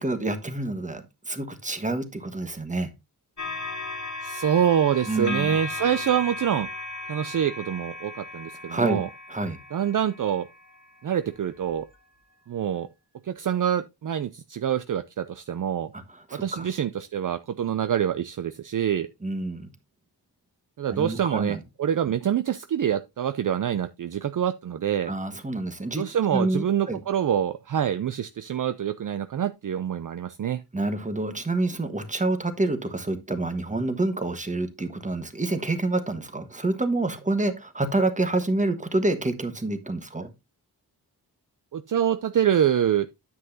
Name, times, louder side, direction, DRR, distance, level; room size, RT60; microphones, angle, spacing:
voice 1, 0.0-2.9 5.1-5.5 8.7-9.0 9.3-9.6 15.9-16.0 16.3-16.7 19.2-19.7 20.9-21.6 25.1-26.0 26.3-27.0 30.7-40.3, right 2 dB, 20° right, 1.2 m, -27 dB
sound 1, 3.4-10.8 11.6-11.8, left 2 dB, 50° left, 1.7 m, -36 dB
voice 2, 4.2-6.7 7.1-9.1 9.7-10.5 11.0-11.9 12.5-12.9 13.2-15.9 16.3-19.1 20.8-25.1 26.0-30.6 41.7-43.1, right 9 dB, 55° right, 0.5 m, -26 dB
9.4 x 7.9 x 2.7 m
wide cardioid pair, 125°, 38 cm